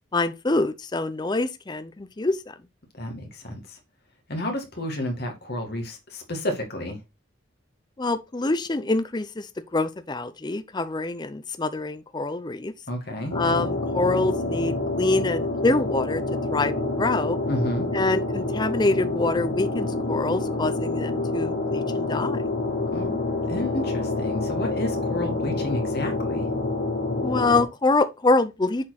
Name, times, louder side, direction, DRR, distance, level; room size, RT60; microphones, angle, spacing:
voice 1, 0.1-2.5 8.0-12.7 13.3-16.2 16.5-17.4 17.9-22.4 27.2-28.9, left 2 dB, 20° left, 0.5 m, -25 dB
voice 2, 3.0-3.8 4.3-7.0 12.9-13.4 17.5-17.9 22.9-23.1 23.5-26.5, left 1 dB, 50° left, 2.1 m, -31 dB
sound 1, 13.3-27.6, left 2 dB, 90° left, 3.0 m, -27 dB
7.5 x 4.3 x 4.1 m
head